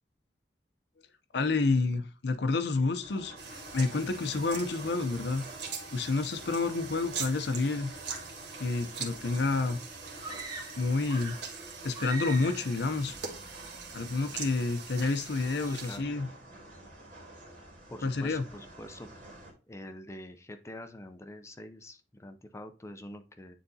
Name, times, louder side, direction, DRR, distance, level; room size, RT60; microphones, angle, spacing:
voice 1, 1.3-5.5 5.9-7.9 8.6-9.8 10.8-11.4 11.8-13.1 13.9-16.3 18.0-18.4, left 3 dB, 65° left, 0.6 m, -29 dB
sound 1, 3.0-19.5, right 1 dB, 45° right, 2.5 m, -48 dB
sound 2, 3.4-16.0, right 6 dB, 70° right, 1.5 m, -43 dB
sound 3, 10.2-11.5 11.9-12.7, right 2 dB, 25° right, 1.2 m, -41 dB
voice 2, 15.7-16.2 17.9-19.1 19.7-23.6, left 1 dB, 15° left, 0.5 m, -45 dB
9.2 x 3.9 x 2.7 m
head